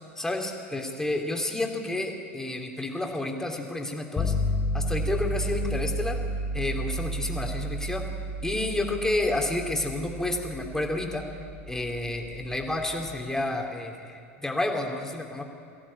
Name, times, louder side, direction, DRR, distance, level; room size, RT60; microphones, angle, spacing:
voice 1, 0.2-4.3 4.7-6.2 6.5-8.0 8.4-11.3 11.7-15.4, left 2 dB, 5° left, 2 dB, 3.2 m, -30 dB
sound 1, 4.2-13.1, equal, 25° left, 1.9 m, -32 dB
23.5 x 16.0 x 8.7 m, 2.4 s
figure-of-eight pair, 85°, 8 cm